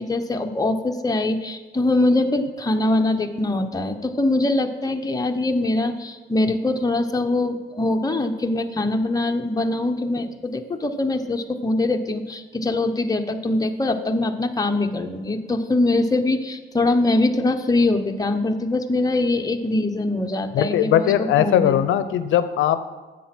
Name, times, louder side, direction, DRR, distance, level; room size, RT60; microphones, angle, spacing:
voice 1, 0.0-21.8, left 2 dB, 20° left, 5 dB, 0.9 m, -23 dB
voice 2, 20.5-22.9, left 10 dB, 80° left, 12 dB, 0.6 m, -19 dB
10.0 x 7.6 x 6.0 m, 1.3 s
cardioid pair, 90°, 20 cm